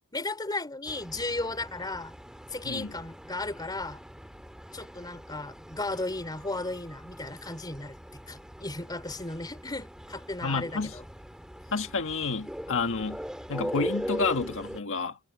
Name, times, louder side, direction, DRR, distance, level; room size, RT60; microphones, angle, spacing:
voice 1, 0.1-2.1 2.5-4.0 4.7-8.0 8.3-11.0, left 2 dB, 20° left, 3.2 m, -35 dB
sound 1, 0.9-14.8, equal, 5° right, 2.6 m, -40 dB
voice 2, 10.4-11.0 11.7-13.2 13.5-15.2, left 4 dB, 60° left, 1.7 m, -30 dB
head